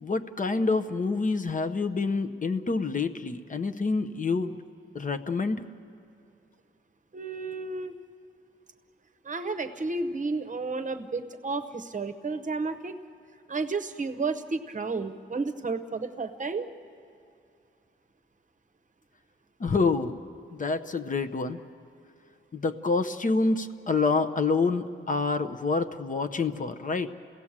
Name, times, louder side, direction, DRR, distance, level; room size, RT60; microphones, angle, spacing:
voice 1, 0.0-4.6 4.9-5.6 19.6-20.2 20.5-21.6 22.5-27.1, left 4 dB, 40° left, 9 dB, 0.8 m, -27 dB
voice 2, 7.1-7.9 9.2-13.0 13.5-16.7, right 3 dB, 35° right, 9 dB, 0.9 m, -32 dB
29.5 x 17.0 x 7.4 m, 2.5 s
wide cardioid pair, 140°, 21 cm